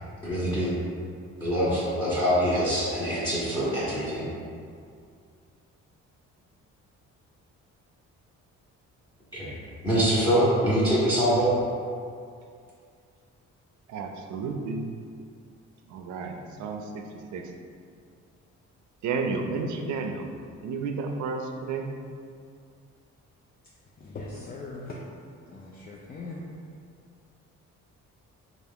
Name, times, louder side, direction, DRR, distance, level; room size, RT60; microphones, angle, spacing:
voice 1, 0.2-0.7 1.4-4.3 9.3-9.6 9.8-11.5, equal, 15° left, -10 dB, 0.9 m, -24 dB
voice 2, 13.9-14.9 15.9-17.0 17.3-17.4 19.0-20.3 20.6-21.9, right 4 dB, 70° right, 3 dB, 0.5 m, -31 dB
voice 3, 24.0-25.0 25.5-26.4, left 3 dB, 30° left, -4 dB, 0.4 m, -40 dB
3.4 x 2.4 x 3.5 m, 2.3 s
cardioid pair, 90°, 30 cm